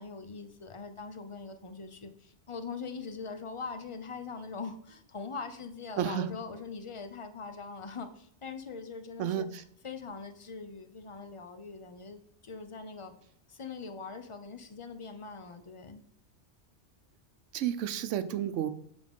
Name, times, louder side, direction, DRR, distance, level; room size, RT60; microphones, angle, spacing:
voice 1, 0.0-9.5 9.8-13.1 13.5-16.0, left 4 dB, 35° left, 8 dB, 0.5 m, -42 dB
voice 2, 6.0-6.3 9.2-9.6 17.5-18.7, right 10 dB, 80° right, 13 dB, 0.9 m, -31 dB
7.4 x 3.6 x 5.3 m, 0.69 s
omnidirectional pair, 1.2 m